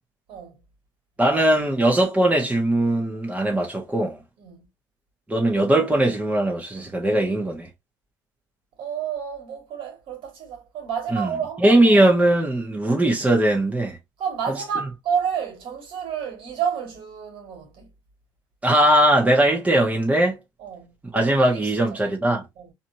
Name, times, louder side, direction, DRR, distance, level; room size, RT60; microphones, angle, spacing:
voice 1, 0.3-0.6 4.4-4.7 8.8-12.1 14.2-17.9 20.6-20.9 21.2-22.0 22.6-22.7, right 7 dB, 50° right, 2.1 m, -30 dB
voice 2, 1.2-4.2 5.3-7.7 11.1-11.3 11.6-14.0 18.6-20.4 21.1-22.4, right 1 dB, 10° right, 1.4 m, -20 dB
4.1 x 3.0 x 2.8 m
figure-of-eight pair, 60°, 11 cm